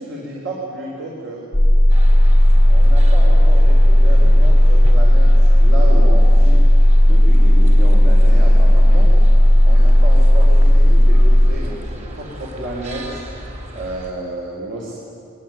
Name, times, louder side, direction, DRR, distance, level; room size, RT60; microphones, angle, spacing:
voice 1, 0.0-1.5 2.7-6.6 7.0-9.1 9.7-13.2 13.7-14.9, right 1 dB, 55° right, -3 dB, 4.4 m, -31 dB
sound 1, 1.5-11.5, equal, 25° left, 0.9 m, -11 dB
Parque urbano, 1.9-14.1, equal, 35° right, 3.5 m, -34 dB
22.5 x 21.0 x 9.2 m, 2.8 s
head